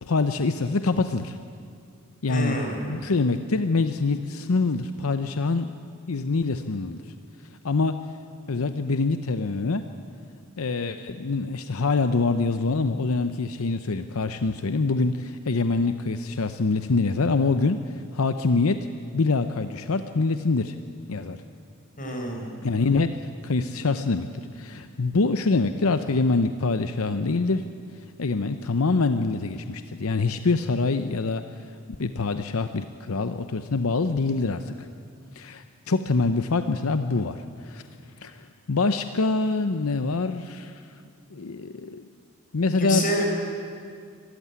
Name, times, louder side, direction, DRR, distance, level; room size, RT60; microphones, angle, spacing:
voice 1, 0.0-1.4 2.2-2.6 2.9-5.7 6.1-7.0 7.6-8.0 8.5-9.9 10.6-18.9 19.1-20.8 21.1-21.4 22.6-23.2 23.4-24.3 24.5-27.7 28.0-31.5 32.0-34.9 35.3-37.8 38.2-40.9 41.3-42.0 42.5-43.1, left 3 dB, 80° left, 9 dB, 0.7 m, -25 dB
voice 2, 2.3-2.8 22.0-22.5 42.8-43.3, equal, 40° left, 2 dB, 4.6 m, -27 dB
25.0 x 14.5 x 9.5 m, 2.2 s
head